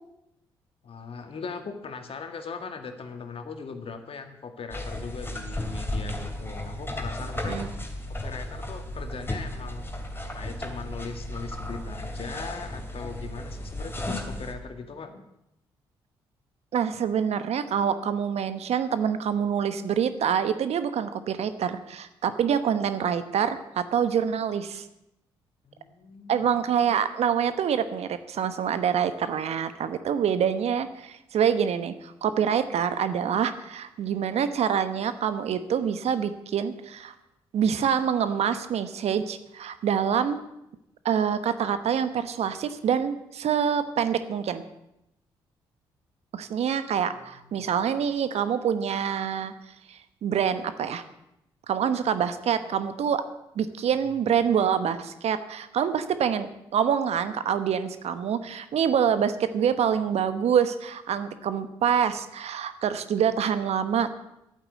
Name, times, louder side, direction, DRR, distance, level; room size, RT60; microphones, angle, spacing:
voice 1, 0.8-7.6 8.2-9.9 10.3-15.2 25.6-26.5 47.2-47.7 54.1-54.2, left 5 dB, 50° left, 7 dB, 2.0 m, -39 dB
sound 1, 4.7-14.5, left 1 dB, 20° left, 2.8 m, -34 dB
voice 2, 16.7-24.9 26.3-37.1 37.5-40.4 41.0-44.6 46.3-49.5 49.9-51.0 51.7-53.2 53.5-64.1, right 8 dB, 60° right, 12 dB, 1.1 m, -26 dB
11.5 x 9.1 x 8.4 m, 0.86 s
hypercardioid pair, 45°, 12 cm